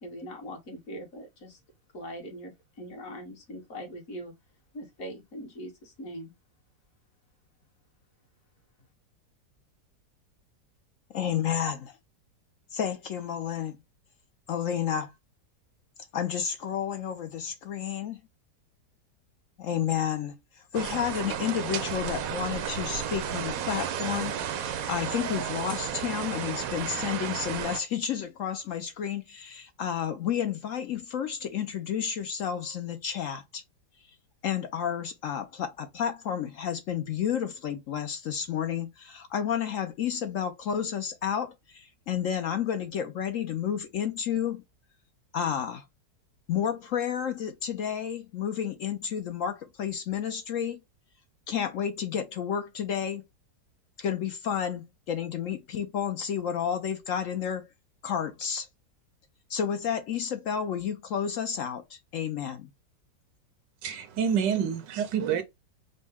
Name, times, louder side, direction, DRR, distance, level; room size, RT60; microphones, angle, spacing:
voice 1, 0.0-1.6 1.9-4.3 4.7-6.3, equal, 50° left, 1.8 m, -41 dB
voice 2, 11.1-12.0 12.7-13.8 14.5-15.1 16.1-18.2 19.6-33.6 34.4-44.6 45.3-45.8 46.5-50.8 51.5-53.2 54.0-57.7 58.0-58.7 59.5-62.7, left 8 dB, 70° left, 0.8 m, -31 dB
sound 1, 20.7-27.8, right 9 dB, 65° right, 0.9 m, -33 dB
voice 3, 63.8-65.4, right 8 dB, 85° right, 1.4 m, -27 dB
5.2 x 2.1 x 3.5 m
omnidirectional pair, 1.9 m